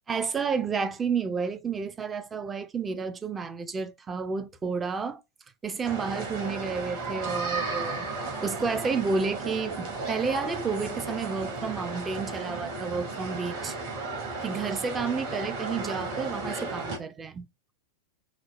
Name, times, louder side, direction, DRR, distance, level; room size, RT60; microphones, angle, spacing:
voice 1, 0.1-5.2 5.6-8.1 8.4-13.8 14.4-17.5, right 5 dB, 20° right, 0.5 m, -31 dB
sound 1, 5.8-17.0, right 3 dB, 50° right, 1.7 m, -34 dB
4.9 x 2.0 x 4.2 m
figure-of-eight pair, 90°, 0 cm